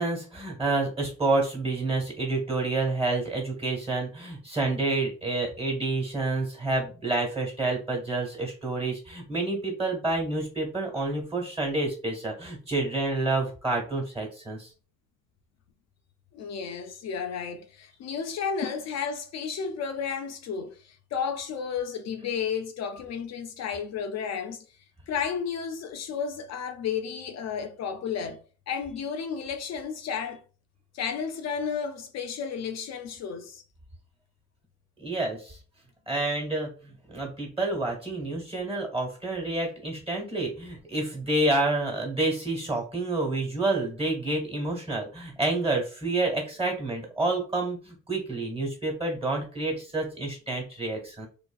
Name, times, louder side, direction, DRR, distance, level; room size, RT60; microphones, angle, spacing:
voice 1, 0.0-14.7 35.0-35.6 36.1-51.3, right 2 dB, 20° right, 1.3 m, -29 dB
voice 2, 16.3-24.6 25.1-30.4 30.9-33.6, left 6 dB, 60° left, 0.4 m, -32 dB
2.6 x 2.5 x 2.3 m
cardioid pair, 90°, 30 cm